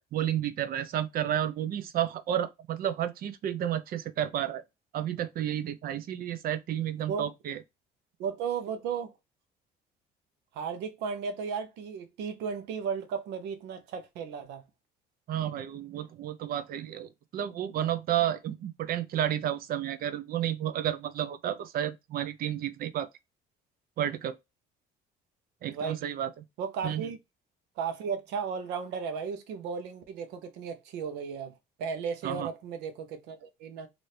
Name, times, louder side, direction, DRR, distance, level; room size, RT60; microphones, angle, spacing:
voice 1, 0.0-4.6 4.9-7.6 15.3-23.1 24.0-24.3 25.6-26.3 26.8-27.1 32.2-32.5, right 11 dB, 60° right, 0.6 m, -31 dB
voice 2, 8.2-9.1 10.5-14.6 25.7-26.2 26.6-27.2 27.8-31.5 31.8-33.9, right 6 dB, 90° right, 0.9 m, -35 dB
3.2 x 2.7 x 4.3 m
cardioid pair, 110°, 17 cm